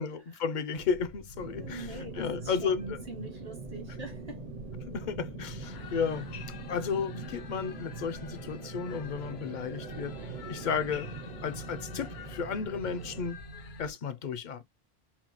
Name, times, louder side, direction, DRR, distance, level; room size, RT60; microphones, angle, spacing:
voice 1, 0.0-1.9 2.2-3.0 4.9-6.3 6.7-10.1 10.5-11.1 11.4-13.4 13.8-14.6, left 6 dB, 55° left, 0.6 m, -33 dB
sound 1, 0.7-13.9, left 1 dB, 85° right, 2.4 m, -50 dB
sound 2, 1.4-13.3, right 4 dB, 45° right, 0.7 m, -43 dB
voice 2, 1.6-4.4, right 2 dB, 70° right, 2.8 m, -43 dB
sound 3, 5.6-13.9, left 7 dB, 75° left, 1.0 m, -49 dB
5.6 x 2.3 x 2.9 m
omnidirectional pair, 1.1 m